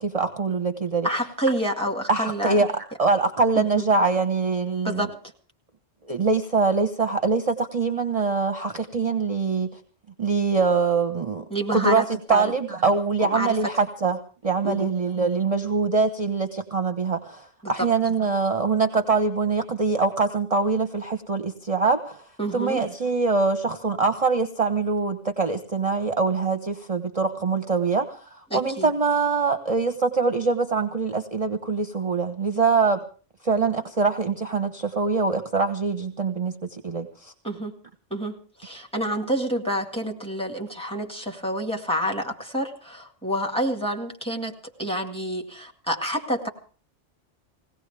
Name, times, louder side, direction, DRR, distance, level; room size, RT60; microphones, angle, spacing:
voice 1, 0.0-1.1 2.1-5.1 6.1-9.7 10.2-11.4 11.7-12.0 12.3-22.2 22.5-33.0 33.4-37.3, right 4 dB, 35° right, 7 dB, 0.9 m, -24 dB
voice 2, 1.0-2.6 3.6-3.8 4.8-5.1 11.5-12.5 13.2-13.6 14.6-14.9 17.6-17.9 22.4-22.8 28.5-28.9 37.4-37.8 38.1-46.5, equal, 5° left, 2 dB, 1.9 m, -28 dB
21.0 x 17.5 x 3.4 m, 0.39 s
omnidirectional pair, 1.2 m